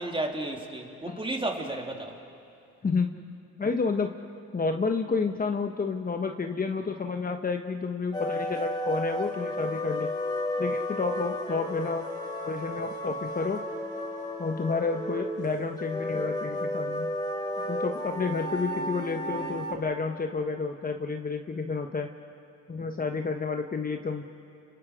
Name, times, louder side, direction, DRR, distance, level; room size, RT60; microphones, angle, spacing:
voice 1, 0.0-2.2, right 2 dB, 15° right, 1 dB, 3.0 m, -32 dB
voice 2, 2.8-3.1 3.6-4.1 4.5-10.1 10.6-12.1 12.4-13.6 14.4-17.1 17.7-22.1 22.7-24.3, left 4 dB, 30° left, 4 dB, 1.1 m, -30 dB
sound 1, 8.1-19.7, left 1 dB, 15° left, 4.4 m, -33 dB
30.0 x 25.5 x 5.0 m, 2.6 s
cardioid pair, 90°, 30 cm